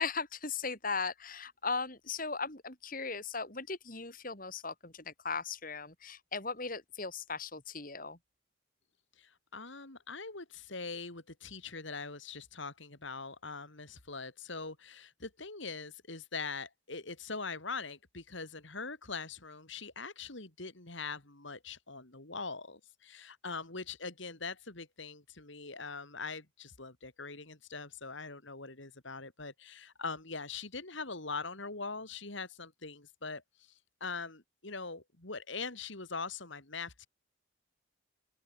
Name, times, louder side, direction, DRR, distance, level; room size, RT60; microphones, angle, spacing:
voice 1, 0.0-8.2, left 4 dB, 40° left, 3.9 m, -37 dB
voice 2, 9.2-37.1, left 4 dB, 65° left, 3.1 m, -42 dB
open air
head